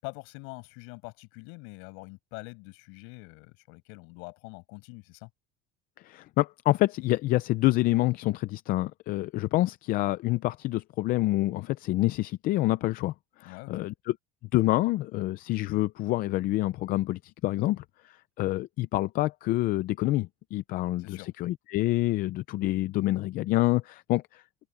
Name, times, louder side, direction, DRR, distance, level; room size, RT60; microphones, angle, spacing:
voice 1, 0.0-5.3 13.4-13.9 21.0-21.3, left 30 dB, 80° left, 7.5 m, -44 dB
voice 2, 6.0-13.1 13.4-14.1 14.5-24.4, left 17 dB, 45° left, 0.5 m, -27 dB
open air
cardioid pair, 170°, 21 cm